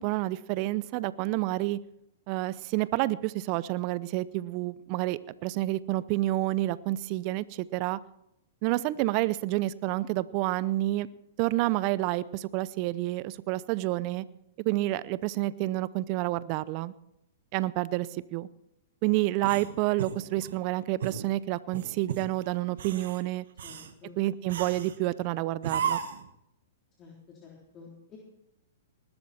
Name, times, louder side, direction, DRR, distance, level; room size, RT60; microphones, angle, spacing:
voice 1, 0.0-1.8 2.3-8.0 8.6-11.1 11.4-14.2 14.6-16.9 17.5-18.5 19.0-23.4 24.2-26.0, right 17 dB, 45° right, 18 dB, 0.6 m, -29 dB
sound 1, 19.4-20.6 21.0-21.3 21.7-22.3 22.7-23.2 23.6-23.9 24.5-25.0 25.6-26.3, right 8 dB, 70° right, 1.4 m, -34 dB
voice 2, 23.6-24.2 27.0-28.2, left 5 dB, 30° left, -3 dB, 3.7 m, -50 dB
20.0 x 12.5 x 4.3 m, 0.83 s
hypercardioid pair, 120°, 0 cm